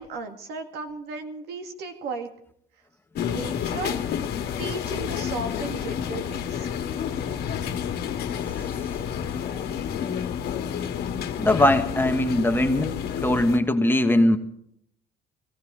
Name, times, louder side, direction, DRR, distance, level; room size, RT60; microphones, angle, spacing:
voice 1, 0.0-2.3 3.2-4.0 4.6-6.7, right 4 dB, 75° right, 5 dB, 2.1 m, -35 dB
sound 1, 3.1-13.6, left 8 dB, 70° left, 1.6 m, -30 dB
voice 2, 11.4-14.4, left 1 dB, 15° left, 6 dB, 1.3 m, -21 dB
17.5 x 15.5 x 4.9 m, 0.69 s
cardioid pair, 110°, 17 cm